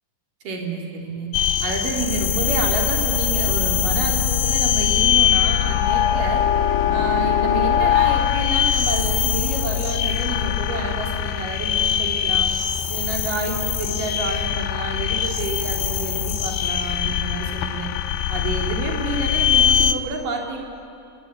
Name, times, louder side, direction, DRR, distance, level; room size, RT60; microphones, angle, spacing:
voice 1, 0.4-1.3 1.6-6.4 6.9-12.5 12.9-17.9 18.3-20.6, right 3 dB, 65° right, 0 dB, 4.9 m, -29 dB
sound 1, 1.3-19.9, left 10 dB, 85° left, 2.8 m, -22 dB
28.5 x 19.5 x 9.7 m, 2.7 s
omnidirectional pair, 4.2 m